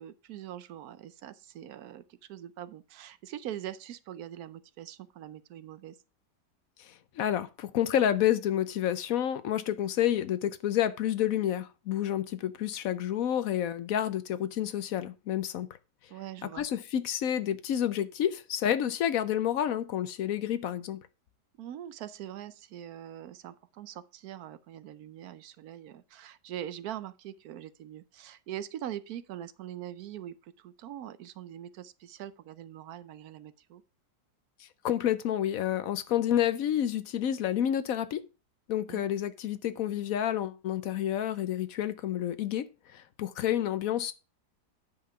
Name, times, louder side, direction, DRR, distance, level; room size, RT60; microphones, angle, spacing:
voice 1, 0.0-6.0 16.1-16.7 21.6-33.8 38.9-39.0, right 11 dB, 70° right, 1.0 m, -43 dB
voice 2, 6.8-15.7 16.6-21.0 34.8-38.2 38.7-42.7 42.9-44.1, left 10 dB, 65° left, 0.9 m, -29 dB
9.5 x 5.5 x 4.9 m
omnidirectional pair, 1.8 m